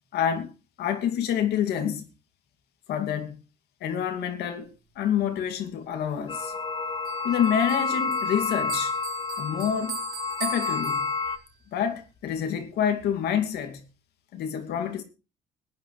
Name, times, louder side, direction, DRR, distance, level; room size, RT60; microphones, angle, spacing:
voice 1, 0.1-0.5 0.8-2.1 2.9-3.4 3.8-4.7 5.0-6.5 7.2-8.9 9.4-10.0 10.4-11.0 11.7-13.8 14.3-15.0, left 9 dB, 75° left, 2.3 m, -27 dB
sound 1, 6.3-11.4, left 4 dB, 30° left, 1.5 m, -29 dB
Bell, 7.0-11.6, right 9 dB, 60° right, 4.9 m, -41 dB
20.0 x 9.9 x 3.2 m
cardioid pair, 110°, 17 cm